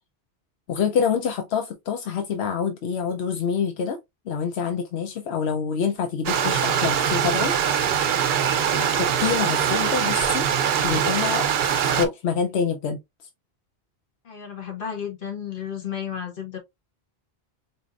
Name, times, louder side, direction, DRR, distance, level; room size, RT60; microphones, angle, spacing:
voice 1, 0.7-4.0 4.3-7.5 9.0-10.5 10.8-13.0, left 6 dB, 85° left, 0.9 m, -26 dB
Stream, 6.3-12.1, right 8 dB, 70° right, 0.8 m, -22 dB
voice 2, 14.2-16.6, left 8 dB, 60° left, 1.4 m, -33 dB
4.5 x 2.8 x 2.3 m
omnidirectional pair, 1.1 m